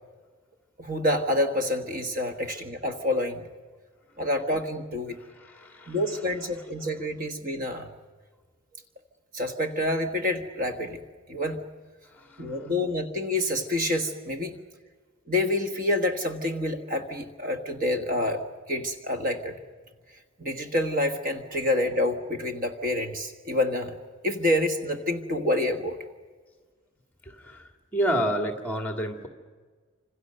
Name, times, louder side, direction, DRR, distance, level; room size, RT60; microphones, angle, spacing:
voice 1, 0.8-3.5 4.2-5.2 5.9-7.9 9.3-11.0 11.3-11.7 12.4-14.6 15.3-18.4 18.7-19.6 20.4-23.9 24.2-26.0, left 1 dB, 40° right, 6 dB, 1.4 m, -27 dB
voice 2, 5.1-6.0 12.1-12.7 27.2-29.3, equal, 10° left, 5 dB, 2.1 m, -30 dB
28.5 x 26.5 x 6.6 m, 1.5 s
head